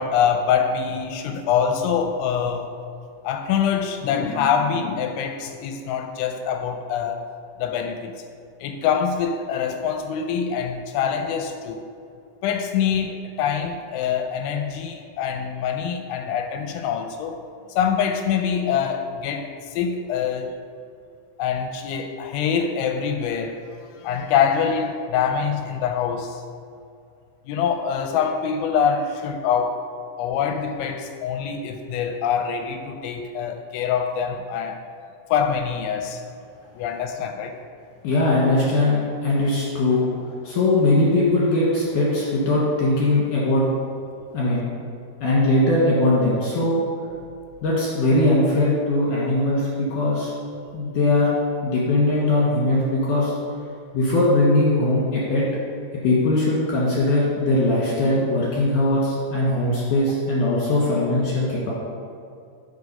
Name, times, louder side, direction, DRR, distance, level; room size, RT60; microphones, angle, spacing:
voice 1, 0.0-2.7 3.2-7.2 7.6-8.1 8.6-11.9 12.4-17.4 17.7-20.5 21.4-23.6 24.0-26.4 27.5-29.8 30.2-34.8 35.3-36.2 36.8-37.6, left 7 dB, 85° left, 6 dB, 2.8 m, -24 dB
voice 2, 38.0-40.1 40.4-43.6 44.3-44.7 45.2-46.8 47.6-50.3 50.7-51.3 51.6-53.3 53.9-55.4 56.0-61.7, left 2 dB, 60° left, -6 dB, 2.3 m, -20 dB
9.5 x 6.6 x 5.4 m, 2.4 s
omnidirectional pair, 5.7 m